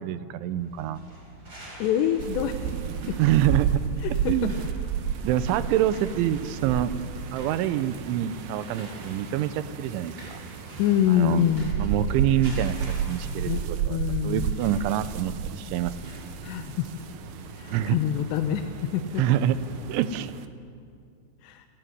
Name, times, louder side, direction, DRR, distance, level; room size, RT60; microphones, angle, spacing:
voice 1, 0.0-1.0 3.2-3.8 4.3-4.5 5.2-6.9 7.3-10.4 11.1-11.4 11.8-12.7 13.1-14.0 14.2-16.1 17.7-18.0 19.2-19.6 19.9-20.3, right 11 dB, 90° right, 13 dB, 3.2 m, -26 dB
sound 1, 0.5-20.0, equal, 25° right, 6.1 m, -45 dB
voice 2, 1.8-3.2 4.0-4.5 10.8-11.7 13.4-14.5 16.4-16.9 17.5-19.2 21.4-21.7, left 10 dB, 75° left, 6 dB, 2.9 m, -26 dB
sound 2, 2.2-20.5, right 8 dB, 75° right, 2.3 m, -33 dB
29.5 x 15.0 x 9.5 m, 2.4 s
omnidirectional pair, 5.3 m